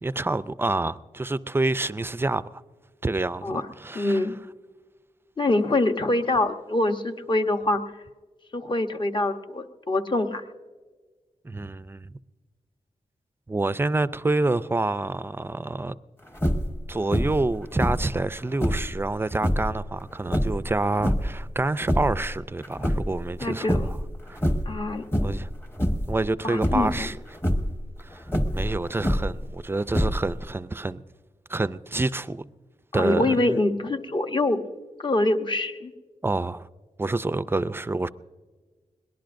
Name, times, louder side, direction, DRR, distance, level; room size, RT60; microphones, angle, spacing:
voice 1, 0.0-2.6 3.0-4.3 11.4-12.2 13.5-16.0 16.9-24.0 24.3-24.4 25.2-25.5 26.1-27.2 28.0-31.0 31.5-32.5 32.9-33.6 36.2-36.7 37.0-38.1, right 2 dB, 20° right, 0.4 m, -27 dB
voice 2, 3.9-4.3 5.4-7.8 8.5-10.4 23.4-23.9 24.7-25.0 26.4-27.1 32.9-34.7 35.0-35.9, left 2 dB, 40° left, 0.9 m, -24 dB
sound 1, 16.3-16.8 17.1-17.5 17.8-18.9 19.4-19.7 20.3-21.4 21.7-22.3 22.6-23.4 23.7-24.1 24.4-24.8 25.1-25.5 25.8-26.2 26.6-27.0 27.3-27.7 28.3-29.4 29.9-30.4, equal, 20° left, 1.1 m, -25 dB
22.0 x 19.0 x 2.6 m
wide cardioid pair, 125°, 13 cm